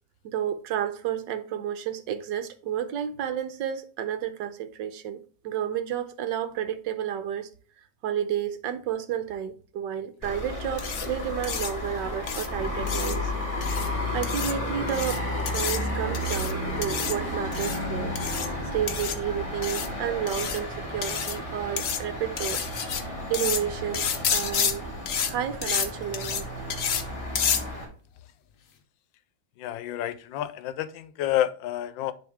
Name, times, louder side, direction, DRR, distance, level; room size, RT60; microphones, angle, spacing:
voice 1, 0.2-7.5 8.0-13.3 14.1-22.6 23.3-24.9 25.2-26.5, right 9 dB, 75° right, 1.4 m, -31 dB
sound 1, 10.2-27.8, left 1 dB, 20° left, 1.7 m, -32 dB
sound 2, 10.8-11.1 11.4-11.7 12.3-12.5 12.9-13.2 13.6-13.9 14.2-14.5 14.9-15.2 15.5-15.8 16.1-16.5 16.8-17.2 17.5-17.8 18.2-18.5 18.9-19.2 19.6-19.9 20.3-20.6 21.0-21.4 21.8-22.0 22.4-23.0 23.3-23.6 23.9-24.7 25.1-25.3 25.6-25.9 26.1-26.4 26.7-27.0 27.4-27.6, left 8 dB, 55° left, 1.0 m, -29 dB
voice 2, 29.6-32.1, left 12 dB, 85° left, 1.3 m, -29 dB
10.0 x 3.4 x 3.5 m
omnidirectional pair, 2.0 m